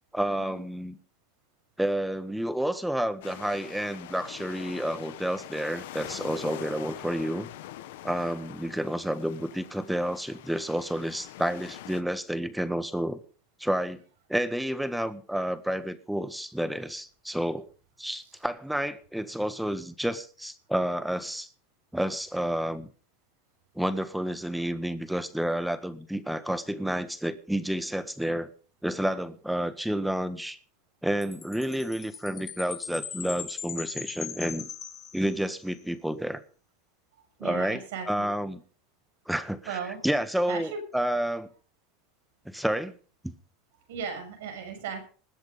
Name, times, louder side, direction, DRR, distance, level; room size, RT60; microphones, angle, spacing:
voice 1, 0.1-1.0 1.8-7.5 8.0-13.2 13.6-14.0 14.3-17.7 18.0-21.5 21.9-22.9 23.7-28.5 28.8-30.6 31.0-34.7 35.1-36.4 37.4-38.6 39.3-39.8 40.0-41.5 42.4-42.9 43.2-43.3, right 1 dB, 5° right, 12 dB, 1.6 m, -30 dB
sound 1, 3.2-12.0, left 14 dB, 80° left, 1.2 m, -44 dB
Chime, 31.2-35.7, left 7 dB, 35° left, 2.8 m, -39 dB
voice 2, 37.1-38.3 39.7-40.0 40.5-40.8 43.9-45.0, right 6 dB, 80° right, 6 dB, 6.2 m, -37 dB
20.5 x 8.1 x 5.3 m, 0.42 s
supercardioid pair, 105°, 0 cm